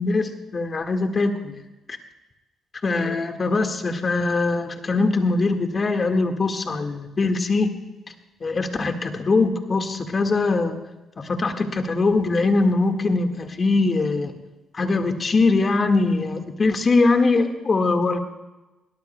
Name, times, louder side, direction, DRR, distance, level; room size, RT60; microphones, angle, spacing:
voice 1, 0.0-1.6 2.8-7.7 8.4-10.8 11.2-14.3 14.7-18.2, left 3 dB, 35° left, 5 dB, 1.7 m, -22 dB
21.5 x 17.5 x 2.2 m, 1.1 s
cardioid pair, 90°, 0 cm